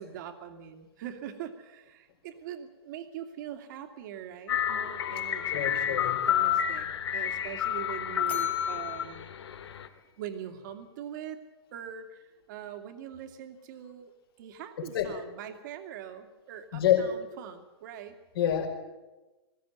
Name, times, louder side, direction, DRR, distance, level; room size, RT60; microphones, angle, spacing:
voice 1, 0.0-9.3 10.2-11.4 11.7-14.1 14.4-18.2, right 9 dB, 45° right, 7 dB, 2.4 m, -42 dB
sound 1, 4.5-9.9, left 10 dB, 80° left, 2.1 m, -30 dB
voice 2, 5.5-6.2 14.8-15.1 16.7-17.1 18.3-18.7, left 11 dB, 60° left, 4 dB, 5.3 m, -27 dB
Bell, 8.3-10.6, left 5 dB, 10° left, 1.7 m, -48 dB
21.0 x 16.0 x 9.4 m, 1.1 s
hypercardioid pair, 160°, 14 cm